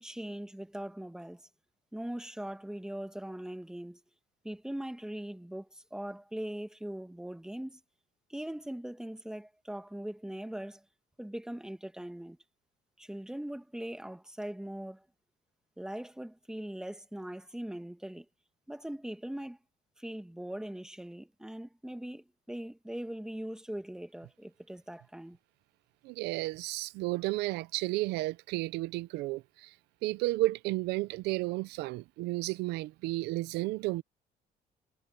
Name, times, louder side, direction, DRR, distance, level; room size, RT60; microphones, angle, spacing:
voice 1, 0.0-1.4 1.9-4.0 4.4-7.8 8.3-10.8 11.2-12.4 13.0-15.1 15.8-18.3 18.7-19.6 20.0-25.4, right 1 dB, 5° right, 1.9 m, -41 dB
voice 2, 26.0-29.7 30.0-34.0, right 19 dB, 90° right, 0.6 m, -32 dB
cardioid pair, 110°, 17 cm